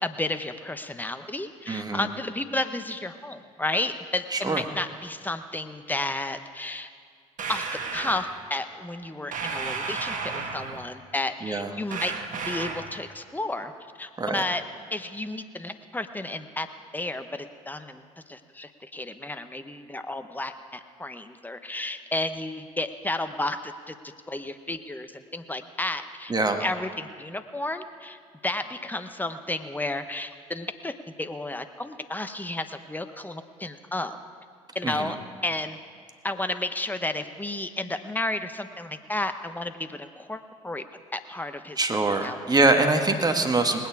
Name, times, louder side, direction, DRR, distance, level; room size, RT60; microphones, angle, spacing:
voice 1, 0.0-6.9 7.5-7.6 7.9-12.1 12.5-13.7 14.0-14.6 14.9-16.7 16.9-18.0 18.3-23.9 24.3-26.3 26.6-30.9 31.2-34.2 34.7-35.2 35.4-35.8 36.2-40.8 41.1-41.8 42.2-42.6, left 2 dB, 10° left, 9 dB, 1.0 m, -32 dB
voice 2, 1.7-2.1 4.3-4.6 11.4-11.7 14.2-14.4 26.3-26.6 34.8-35.1 41.8-43.9, right 2 dB, 25° right, 5 dB, 1.6 m, -24 dB
sound 1, 7.4-8.3 9.3-10.9 11.9-13.0, right 4 dB, 50° right, 1.6 m, -33 dB
19.5 x 9.3 x 4.8 m, 2.1 s
hypercardioid pair, 55°, 17 cm